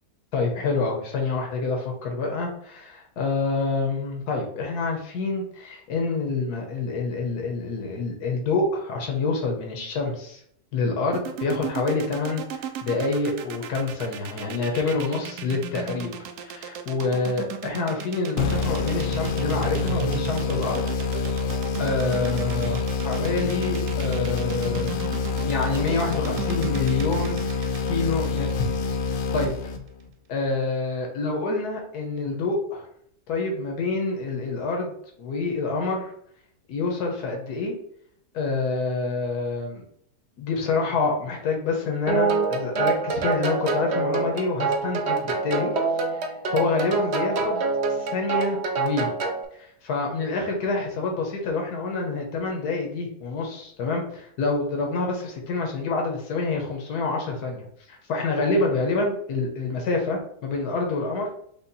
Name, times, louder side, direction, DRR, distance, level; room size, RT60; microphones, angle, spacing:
voice 1, 0.3-10.4 10.7-16.1 16.4-20.8 21.8-25.0 25.4-28.7 29.3-29.7 30.3-32.9 33.3-36.1 36.7-37.7 38.3-39.8 40.4-45.7 46.1-46.2 46.5-47.6 47.9-49.1 49.6-61.3, left 3 dB, 90° left, 1 dB, 1.5 m, -27 dB
sound 1, 11.1-29.3, right 9 dB, 85° right, 1.2 m, -35 dB
sound 2, 18.4-30.1, left 4 dB, 70° left, 0.9 m, -27 dB
sound 3, 42.1-49.4, right 4 dB, 55° right, 0.8 m, -26 dB
5.5 x 2.3 x 4.0 m, 0.67 s
omnidirectional pair, 1.6 m